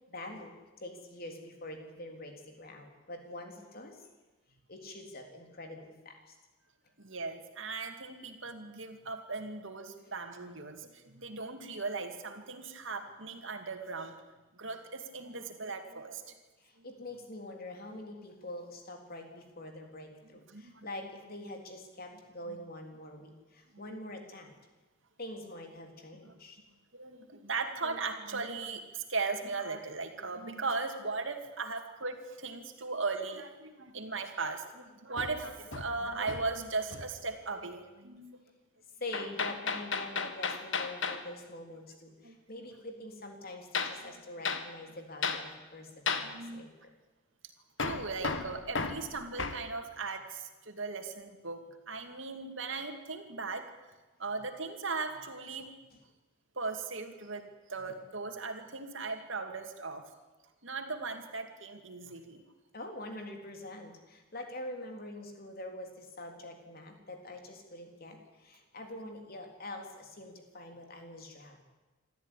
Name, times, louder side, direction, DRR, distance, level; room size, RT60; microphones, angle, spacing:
voice 1, 0.1-4.1 4.7-6.4 10.0-10.1 16.6-24.5 25.2-26.6 39.0-46.7 55.9-56.0 62.7-71.6, left 1 dB, 45° left, 3 dB, 3.7 m, -45 dB
voice 2, 7.0-14.2 14.5-16.3 16.8-16.9 20.5-20.9 22.5-22.6 23.7-23.8 26.2-26.4 26.9-38.4 42.2-42.4 46.2-46.6 47.8-53.7 54.2-55.7 56.6-60.1 60.6-62.4, right 4 dB, 70° right, 5 dB, 2.6 m, -38 dB
Hammer, 35.2-36.6 36.9-37.2 39.1-41.2 43.7-44.0 44.4-44.7 45.2-45.5 46.1-46.3 47.8-49.6, left 4 dB, 65° left, 1.7 m, -34 dB
26.0 x 13.5 x 10.0 m, 1.2 s
head